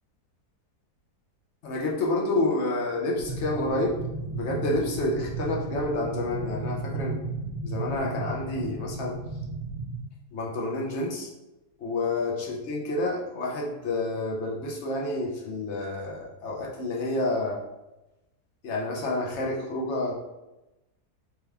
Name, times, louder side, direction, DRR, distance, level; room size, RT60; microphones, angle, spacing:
voice 1, 1.6-4.0 4.3-7.2 7.6-9.2 10.3-11.3 11.8-17.6 18.6-20.1, left 2 dB, 55° left, -2 dB, 0.8 m, -29 dB
sound 1, 3.2-10.0, right 3 dB, 70° right, 1.1 m, -34 dB
3.5 x 3.3 x 3.3 m, 0.98 s
omnidirectional pair, 1.7 m